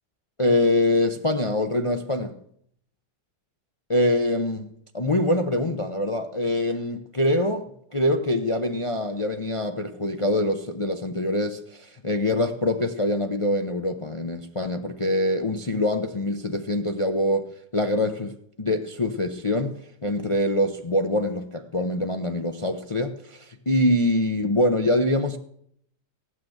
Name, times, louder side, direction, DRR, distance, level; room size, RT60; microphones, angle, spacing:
voice 1, 0.4-2.4 3.9-4.7 4.9-25.4, left 1 dB, 45° left, 0.4 m, -24 dB
15.5 x 9.5 x 7.9 m
omnidirectional pair, 1.8 m